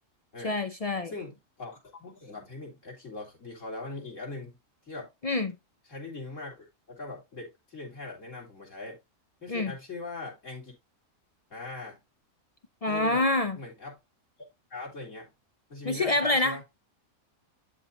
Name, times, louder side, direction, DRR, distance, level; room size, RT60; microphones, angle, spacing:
voice 1, 0.4-1.1 5.2-5.6 9.5-9.7 12.8-13.6 15.8-16.6, left 2 dB, 55° left, 0.4 m, -26 dB
voice 2, 1.0-4.6 4.8-5.1 5.9-9.0 9.4-10.7 11.5-12.0 12.9-13.2 13.6-14.0 14.7-15.3 15.7-16.6, left 3 dB, 70° left, 4.1 m, -41 dB
12.0 x 4.3 x 2.8 m
omnidirectional pair, 1.4 m